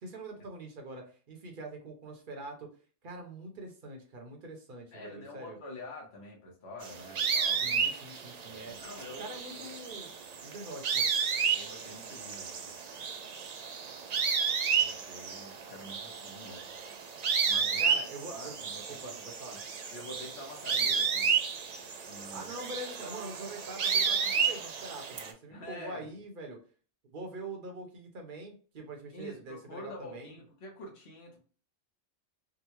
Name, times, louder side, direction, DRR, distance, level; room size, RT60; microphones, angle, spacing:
voice 1, 0.0-2.7 3.0-5.6 7.6-8.8 9.2-10.2 10.4-11.1 17.8-18.6 18.9-19.6 22.3-26.6 27.1-30.4, right 2 dB, 50° right, 3 dB, 0.9 m, -44 dB
voice 2, 4.9-7.7 8.4-9.7 11.5-12.8 14.7-16.7 17.5-18.0 18.3-19.6 19.9-21.4 22.1-22.5 25.5-26.1 29.1-31.4, left 1 dB, 65° left, 0 dB, 1.2 m, -47 dB
sound 1, 6.8-25.3, right 6 dB, 70° right, 0.4 m, -32 dB
3.6 x 2.2 x 2.9 m, 0.40 s
omnidirectional pair, 1.2 m